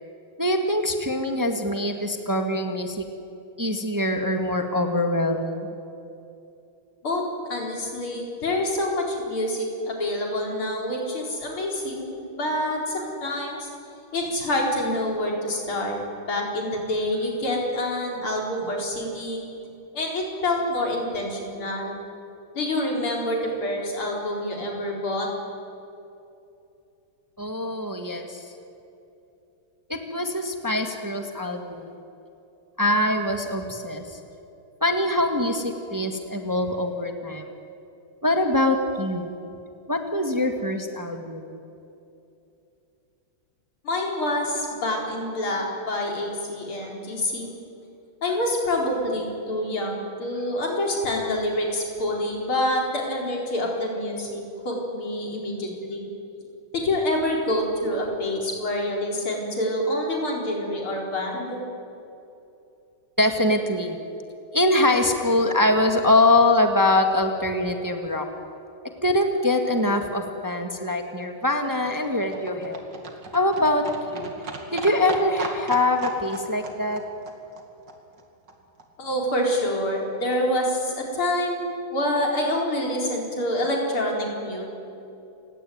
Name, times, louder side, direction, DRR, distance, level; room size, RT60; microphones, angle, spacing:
voice 1, 0.4-3.0 3.6-5.7 27.4-28.5 29.9-31.9 32.8-34.2 34.8-37.5 38.2-39.3 39.9-41.5 63.2-64.0 64.5-68.3 69.0-72.8 73.3-74.3 74.7-77.0, left 1 dB, 10° right, 5 dB, 1.6 m, -23 dB
voice 2, 7.5-13.7 14.1-16.0 16.2-19.4 19.9-21.9 22.6-25.3 43.8-47.5 48.2-56.1 56.7-61.6 79.0-84.7, left 1 dB, 90° left, 0 dB, 5.3 m, -27 dB
Livestock farm animals working animals, 70.6-78.8 79.1-79.2 79.4-79.5 79.7-79.8 80.0-80.1 80.3-80.4 80.7-80.8 81.0-81.1 81.3-81.4, right 3 dB, 55° right, 3.0 m, -37 dB
29.0 x 17.0 x 9.5 m, 2.8 s
omnidirectional pair, 2.3 m